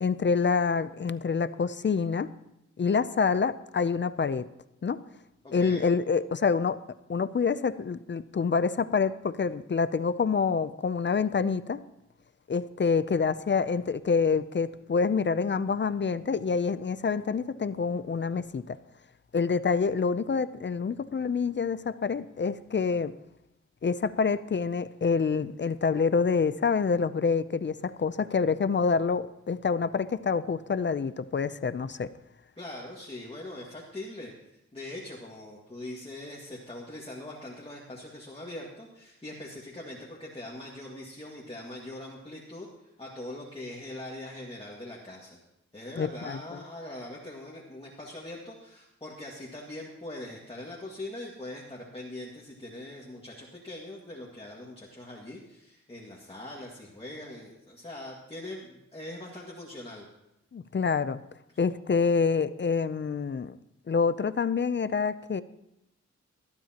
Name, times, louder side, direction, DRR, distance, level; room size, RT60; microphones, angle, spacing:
voice 1, 0.0-2.3 2.8-4.5 4.8-5.0 5.5-6.8 7.1-11.8 12.5-18.8 19.3-23.1 23.8-32.1 46.0-46.6 60.5-61.2 61.6-63.6 63.9-65.4, left 5 dB, 40° left, 15 dB, 0.5 m, -27 dB
voice 2, 5.4-5.9 32.6-34.3 34.7-45.4 45.7-60.1, left 1 dB, 20° left, -4 dB, 1.9 m, -42 dB
20.0 x 12.5 x 2.9 m, 0.87 s
wide cardioid pair, 120°, 29 cm